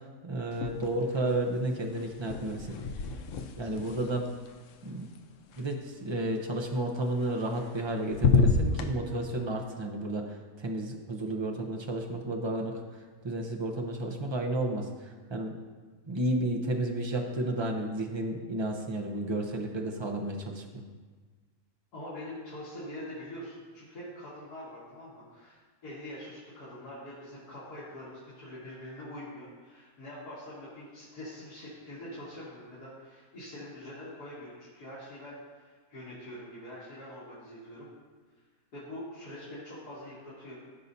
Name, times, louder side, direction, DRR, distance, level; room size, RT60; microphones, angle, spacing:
voice 1, 0.2-2.8 3.6-4.3 4.8-5.1 5.6-12.8 13.2-15.6 16.1-20.8, right 1 dB, 35° right, 1 dB, 0.4 m, -32 dB
sound 1, 0.5-1.2 1.5-5.6 7.2-7.8 8.1-8.9, left 4 dB, 65° left, 0.9 m, -30 dB
voice 2, 21.9-37.9 38.7-40.5, left 1 dB, 85° left, -10 dB, 2.5 m, -44 dB
15.0 x 5.5 x 2.7 m, 1.4 s
omnidirectional pair, 1.6 m